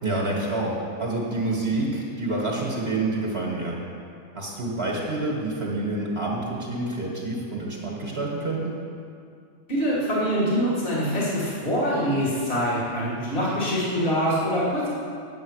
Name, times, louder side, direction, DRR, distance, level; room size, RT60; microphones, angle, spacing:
voice 1, 0.0-3.8 4.3-8.7, right 2 dB, 50° right, -2 dB, 1.6 m, -28 dB
voice 2, 9.7-14.9, equal, 40° left, -7 dB, 2.4 m, -24 dB
8.9 x 7.8 x 6.3 m, 2.3 s
omnidirectional pair, 1.4 m